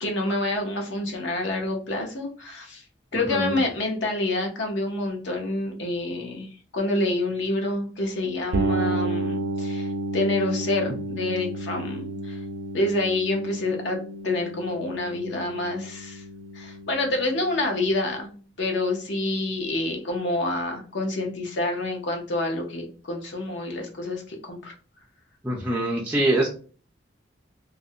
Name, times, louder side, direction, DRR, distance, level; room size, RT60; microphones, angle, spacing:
voice 1, 0.0-2.8 3.1-12.4 12.7-14.0 14.2-16.2 16.5-18.3 18.6-24.7, left 2 dB, 65° left, 2 dB, 0.6 m, -27 dB
sound 1, 8.5-18.2, right 2 dB, 85° right, 0.5 m, -32 dB
voice 2, 25.4-26.5, right 1 dB, 10° right, -1 dB, 0.3 m, -24 dB
2.4 x 2.0 x 2.6 m, 0.39 s
head